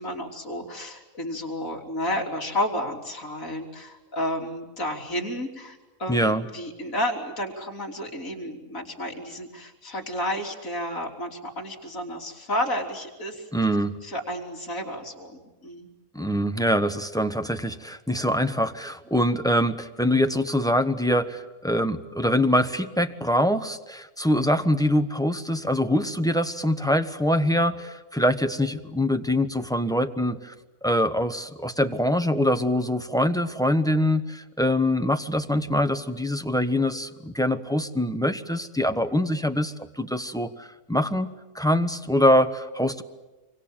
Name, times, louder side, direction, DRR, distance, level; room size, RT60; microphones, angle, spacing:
voice 1, 0.0-13.5 14.0-15.9, left 1 dB, 65° left, 1 dB, 4.0 m, -31 dB
voice 2, 6.1-6.4 13.5-13.9 16.1-30.5 30.8-41.3 41.5-43.0, equal, 5° left, 8 dB, 1.0 m, -24 dB
26.5 x 24.5 x 9.0 m, 1.1 s
omnidirectional pair, 1.5 m